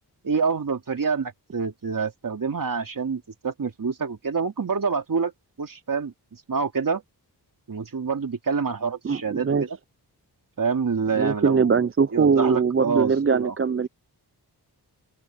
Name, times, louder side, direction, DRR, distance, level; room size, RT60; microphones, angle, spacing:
voice 1, 0.2-5.3 5.6-6.1 6.5-7.0 7.7-9.8 10.6-11.8 12.1-13.5, right 5 dB, 50° right, 3.2 m, -27 dB
voice 2, 9.0-9.6 11.1-13.9, right 5 dB, 30° right, 0.5 m, -21 dB
open air
wide cardioid pair, 90°, 41 cm